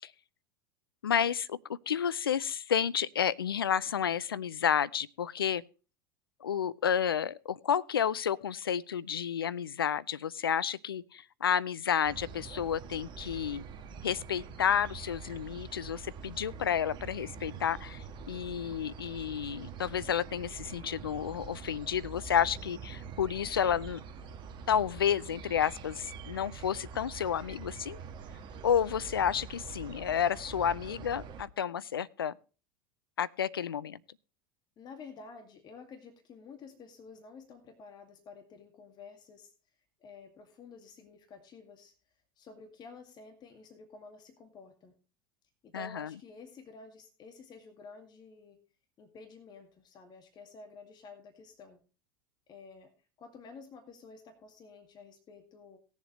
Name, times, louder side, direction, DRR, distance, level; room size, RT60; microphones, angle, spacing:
voice 1, 1.0-5.6 6.4-13.6 14.0-24.0 24.7-28.0 28.6-32.3 33.2-34.0 45.7-46.1, left 8 dB, 90° left, 0.4 m, -31 dB
sound 1, 12.0-31.4, right 6 dB, 40° right, 1.4 m, -45 dB
voice 2, 34.8-39.5 40.0-41.9 42.4-45.0 45.6-48.6 49.0-51.8 52.5-52.9 53.2-55.8, left 4 dB, 35° left, 2.1 m, -51 dB
18.5 x 7.2 x 3.1 m
hypercardioid pair, 85°, 12 cm